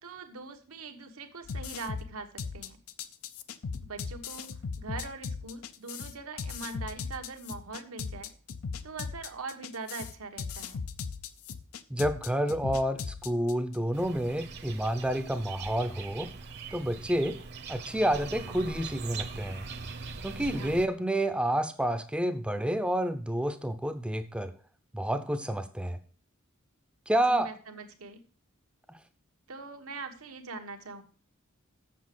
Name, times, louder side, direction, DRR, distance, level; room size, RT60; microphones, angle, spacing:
voice 1, 0.0-2.8 3.8-4.5 4.8-8.3 8.8-10.8 20.3-20.8 27.3-28.2 29.5-31.0, right 3 dB, 85° right, 6 dB, 1.2 m, -42 dB
sound 1, 1.4-13.8, left 5 dB, 80° left, 0.6 m, -38 dB
voice 2, 11.9-16.3 16.7-17.4 17.7-19.7 20.2-24.5 24.9-26.0 27.1-27.5, right 1 dB, 5° right, 9 dB, 0.6 m, -29 dB
sound 2, 13.9-20.9, right 4 dB, 50° right, 0.9 m, -41 dB
7.5 x 6.8 x 5.9 m, 0.42 s
head